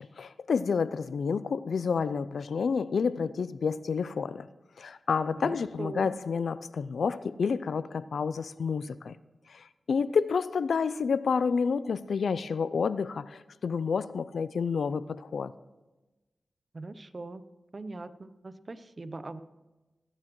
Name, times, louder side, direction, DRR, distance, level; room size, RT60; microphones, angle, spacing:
voice 1, 0.0-4.5 4.8-9.2 9.5-15.5, left 5 dB, 80° left, 0.4 m, -29 dB
voice 2, 5.4-6.1 16.7-17.4 17.7-19.4, right 3 dB, 50° right, 0.7 m, -41 dB
19.0 x 9.8 x 3.1 m
cardioid pair, 40°, 0 cm